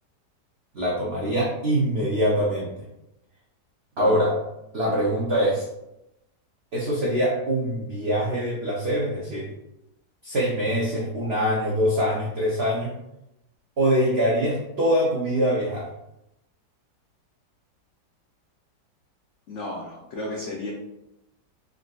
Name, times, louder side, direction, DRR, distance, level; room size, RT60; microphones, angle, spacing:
voice 1, 0.7-2.7 4.0-4.3 4.7-5.7 6.7-9.5 10.2-12.9 13.8-15.9, equal, 75° right, -5 dB, 0.5 m, -23 dB
voice 2, 19.5-20.7, left 2 dB, 85° left, -2 dB, 0.6 m, -33 dB
3.7 x 2.5 x 2.2 m, 0.87 s
omnidirectional pair, 1.8 m